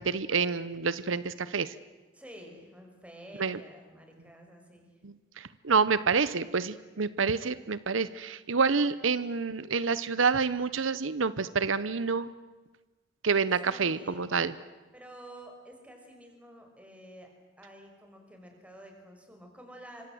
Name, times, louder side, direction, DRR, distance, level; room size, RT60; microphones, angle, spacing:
voice 1, 0.0-1.7 3.4-3.6 5.0-12.3 13.2-14.5, right 5 dB, 80° right, 16 dB, 0.9 m, -28 dB
voice 2, 2.1-5.0 13.6-14.3 14.9-17.3 17.6-20.1, right 1 dB, 5° right, 3 dB, 5.6 m, -50 dB
28.5 x 25.0 x 7.9 m, 1.3 s
head